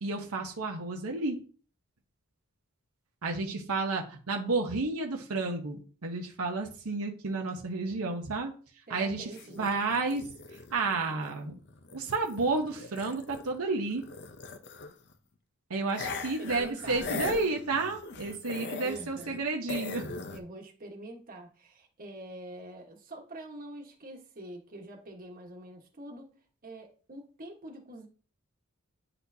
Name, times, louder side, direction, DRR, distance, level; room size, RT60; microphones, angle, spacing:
voice 1, 0.0-1.4 3.2-8.5 8.9-9.3 9.6-10.2 10.7-11.5 11.9-14.0 15.7-20.1, right 3 dB, 80° right, 1 dB, 1.0 m, -31 dB
voice 2, 8.9-9.8 15.9-17.3 18.8-19.4 20.3-26.3 26.6-28.1, right 1 dB, 40° right, 1 dB, 1.3 m, -45 dB
sound 1, 9.3-13.6 13.8-15.1 15.9-19.4 19.7-20.4, left 4 dB, 55° left, 0.7 m, -40 dB
9.7 x 4.2 x 2.7 m, 0.40 s
head